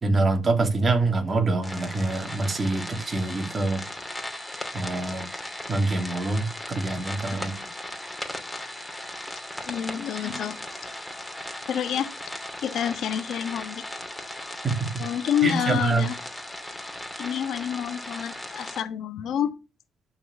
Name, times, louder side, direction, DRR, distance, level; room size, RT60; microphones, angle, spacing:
voice 1, 0.0-3.8 4.7-5.3 5.7-7.5 14.6-14.9 15.4-16.0, right 3 dB, 35° right, 2.7 m, -25 dB
sound 1, 1.6-18.8, left 1 dB, 5° left, 2.4 m, -37 dB
voice 2, 9.6-10.6 11.7-12.1 12.6-13.9 15.0-16.1 17.2-19.5, left 9 dB, 75° left, 1.3 m, -28 dB
11.5 x 4.9 x 7.2 m
cardioid pair, 90°, 0 cm